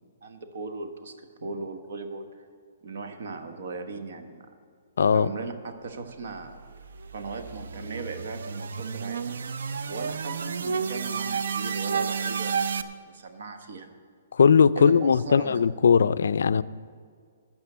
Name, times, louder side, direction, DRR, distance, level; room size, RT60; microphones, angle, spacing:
voice 1, 0.2-2.3 2.8-4.5 5.1-6.6 7.1-9.4 9.9-12.8 13.1-13.9 14.7-15.6, right 4 dB, 60° right, 7 dB, 1.2 m, -38 dB
voice 2, 5.0-5.3 14.3-16.6, left 6 dB, 75° left, 15 dB, 0.3 m, -19 dB
sound 1, 6.4-12.8, right 6 dB, 75° right, 0.6 m, -31 dB
12.5 x 6.1 x 7.9 m, 2.1 s
hypercardioid pair, 170°, 0 cm